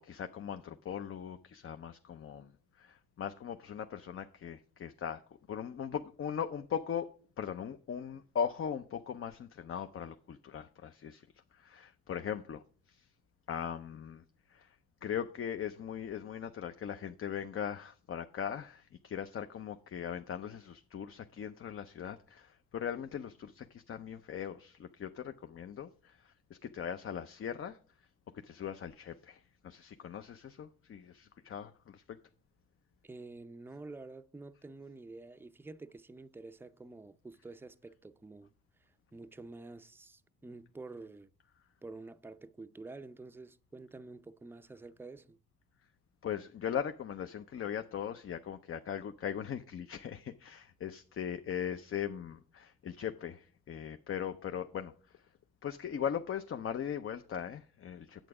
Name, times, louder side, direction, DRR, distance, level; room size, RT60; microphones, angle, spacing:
voice 1, 0.0-5.2 5.5-7.1 7.4-11.3 11.5-13.1 13.5-27.8 28.3-32.2 46.2-55.2 55.6-58.3, left 8 dB, 45° left, 0.7 m, -39 dB
voice 2, 33.0-38.5 39.1-41.3 41.8-45.4, right 3 dB, 5° right, 0.5 m, -49 dB
9.1 x 7.8 x 4.8 m
cardioid pair, 90°, 30 cm